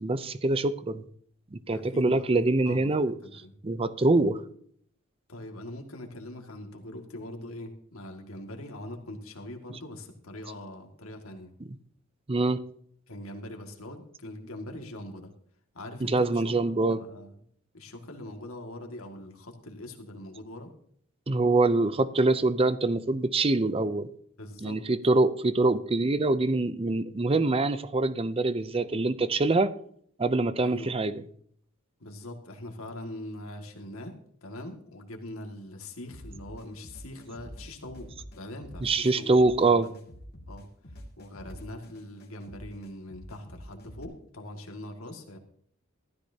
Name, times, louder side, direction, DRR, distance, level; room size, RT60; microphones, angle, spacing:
voice 1, 0.0-1.0 1.5-3.1 3.6-4.4 12.3-12.6 16.0-17.0 21.3-24.1 24.6-29.7 30.2-31.1 38.8-39.9, right 2 dB, 25° right, 0.6 m, -24 dB
voice 2, 1.7-2.3 2.6-3.5 5.3-11.5 13.1-15.3 15.7-16.5 16.9-17.3 17.7-20.7 24.4-24.8 30.6-30.9 32.0-39.3 39.6-40.0 40.5-45.4, left 1 dB, 85° left, 2.1 m, -42 dB
sound 1, 36.1-44.0, equal, 50° left, 2.3 m, -47 dB
15.0 x 13.0 x 2.8 m
head